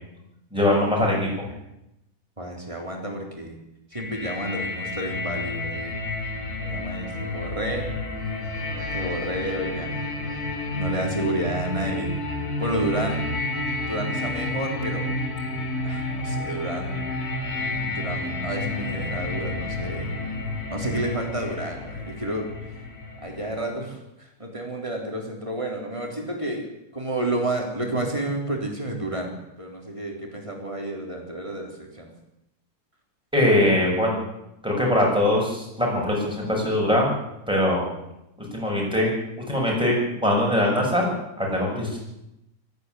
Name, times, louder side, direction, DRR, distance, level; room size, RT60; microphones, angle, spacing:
voice 1, 0.5-1.3 33.3-34.2 34.6-37.1 37.5-37.9 38.4-39.1 39.5-41.1 41.4-42.0, left 1 dB, 5° right, -2 dB, 7.3 m, -22 dB
voice 2, 2.4-3.6 3.9-5.9 6.6-7.9 8.9-9.9 10.7-12.1 12.6-13.2 13.8-15.1 15.8-17.0 17.8-20.2 20.7-22.5 23.2-29.3 29.6-32.1, right 1 dB, 20° right, 1 dB, 4.2 m, -30 dB
sound 1, 3.9-23.7, left 2 dB, 75° left, 3.8 m, -30 dB
18.0 x 15.0 x 9.7 m, 0.88 s
omnidirectional pair, 1.6 m